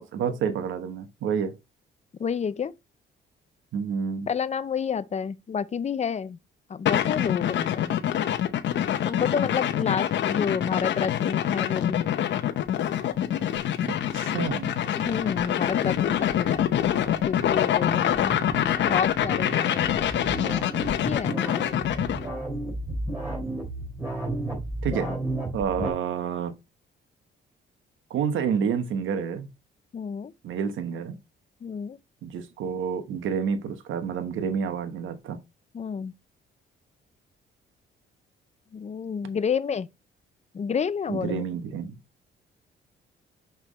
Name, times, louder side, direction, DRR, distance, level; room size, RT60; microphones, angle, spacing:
voice 1, 0.0-1.6 3.7-4.3 13.8-14.7 24.8-25.1 25.5-26.6 28.1-29.5 30.4-31.2 32.2-35.4 41.1-42.0, right 7 dB, 75° right, 1.2 m, -29 dB
voice 2, 2.2-2.7 4.3-6.4 6.7-7.9 9.0-12.2 15.0-17.0 17.2-20.1 21.0-22.3 25.1-25.2 25.8-25.9 29.9-30.3 31.6-32.0 35.7-36.1 38.7-39.9 40.5-41.4, left 6 dB, 35° left, 0.6 m, -30 dB
sound 1, 6.9-22.3, left 10 dB, 65° left, 0.8 m, -25 dB
sound 2, 12.0-25.9, right 2 dB, 15° right, 3.7 m, -35 dB
6.0 x 5.6 x 3.0 m
cardioid pair, 90°, 20 cm